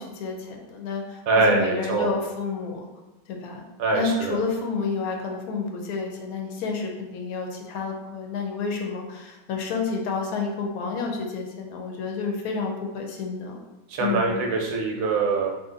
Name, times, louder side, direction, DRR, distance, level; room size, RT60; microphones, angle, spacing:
voice 1, 0.0-2.9 3.3-3.6 3.9-13.6 14.0-14.4, left 4 dB, 80° left, 1 dB, 1.1 m, -30 dB
voice 2, 1.3-2.1 3.8-4.4 13.9-15.5, right 3 dB, 75° right, 0 dB, 1.0 m, -23 dB
2.7 x 2.5 x 3.7 m, 1.0 s
omnidirectional pair, 1.5 m